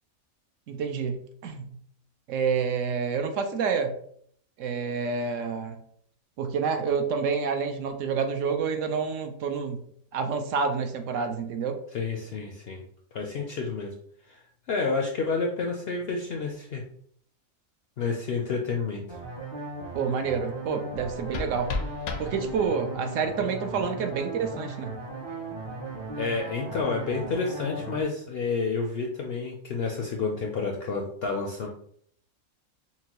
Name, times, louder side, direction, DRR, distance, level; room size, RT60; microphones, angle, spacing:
voice 1, 0.7-1.8 2.3-4.0 4.6-5.8 6.4-9.8 10.1-11.8 19.9-21.7 22.2-25.0, right 5 dB, 70° right, 5 dB, 0.9 m, -28 dB
voice 2, 11.9-12.8 13.1-13.9 14.3-14.4 14.7-16.8 18.0-19.2 26.2-31.7, left 4 dB, 65° left, 1 dB, 0.6 m, -29 dB
sound 1, 19.1-28.0, right 2 dB, 30° right, 0.5 m, -37 dB
sound 2, 20.9-22.9, left 4 dB, 90° left, 1.1 m, -35 dB
5.7 x 2.2 x 2.9 m, 0.63 s
omnidirectional pair, 1.5 m